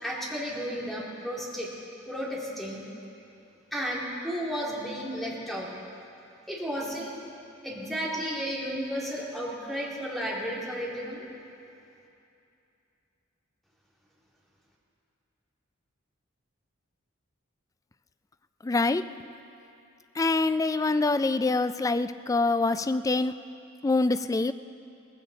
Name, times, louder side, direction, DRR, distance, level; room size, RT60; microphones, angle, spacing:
voice 1, 0.0-1.7 2.1-2.8 3.7-5.7 6.5-7.2 7.6-11.3, equal, ahead, -5 dB, 2.5 m, -33 dB
voice 2, 18.6-19.1 20.2-23.4 23.8-24.5, left 3 dB, 15° left, 12 dB, 0.3 m, -25 dB
19.0 x 16.0 x 4.0 m, 2.7 s
head